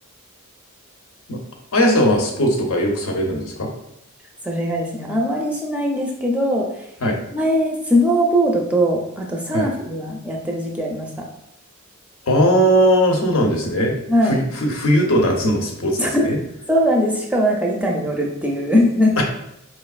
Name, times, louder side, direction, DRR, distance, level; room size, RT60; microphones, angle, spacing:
voice 1, 1.7-3.7 7.0-7.2 9.5-9.7 12.2-13.9 14.2-16.4 19.2-19.3, equal, 75° left, 1 dB, 0.8 m, -18 dB
voice 2, 4.4-6.7 7.3-11.3 14.1-14.4 16.0-16.2 16.7-19.2, equal, 5° right, -1 dB, 0.5 m, -20 dB
4.5 x 3.0 x 2.4 m, 0.79 s
head